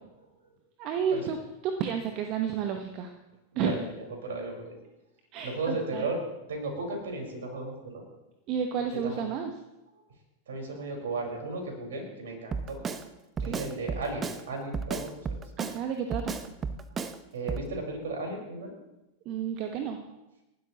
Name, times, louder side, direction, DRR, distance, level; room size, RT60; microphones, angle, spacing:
voice 1, 0.8-1.4 1.6-3.1 3.6-3.8 5.3-6.1 8.5-9.5 13.4-13.6 15.6-16.4 19.2-20.0, right 7 dB, 40° right, 5 dB, 1.2 m, -31 dB
voice 2, 3.5-4.8 5.4-6.2 6.5-8.0 9.0-9.2 10.5-12.8 13.4-15.4 16.9-18.7, right 3 dB, 60° right, 1 dB, 4.9 m, -35 dB
Drum kit, 12.5-13.0 13.4-14.4 14.7-15.8 16.1-17.2 17.5-17.7, right 5 dB, 20° right, 0.9 m, -33 dB
28.5 x 12.0 x 3.0 m, 0.97 s
figure-of-eight pair, 90°, 0 cm